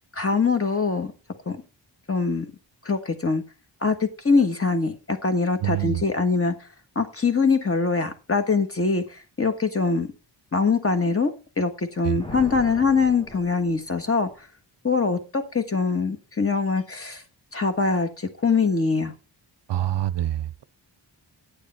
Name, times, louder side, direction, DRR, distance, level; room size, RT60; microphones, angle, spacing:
voice 1, 0.1-1.1 1.5-1.6 2.1-2.5 2.8-3.4 3.8-6.5 6.9-10.1 10.5-14.3 14.8-17.2 17.5-19.1, left 4 dB, 30° left, 1.5 m, -23 dB
voice 2, 5.6-6.0 12.0-12.2 19.7-20.6, right 13 dB, 65° right, 0.6 m, -26 dB
Thunder, 12.2-14.4, left 1 dB, 10° left, 1.5 m, -40 dB
10.0 x 8.6 x 4.3 m
wide cardioid pair, 125°, 45 cm